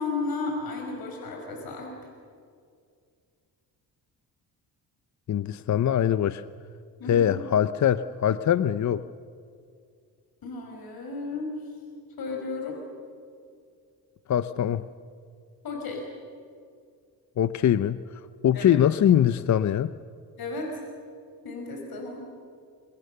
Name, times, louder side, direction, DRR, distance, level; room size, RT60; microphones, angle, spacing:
voice 1, 0.0-2.0 7.0-7.4 10.4-11.8 12.2-12.8 15.6-16.1 18.5-18.7 20.4-20.8 21.4-22.2, left 3 dB, 60° left, 1 dB, 5.6 m, -33 dB
voice 2, 5.3-6.4 7.1-9.1 14.3-14.8 17.4-18.0 18.4-19.9, left 10 dB, 45° left, 13 dB, 0.7 m, -22 dB
29.0 x 25.0 x 6.9 m, 2.3 s
cardioid pair, 85°, 40 cm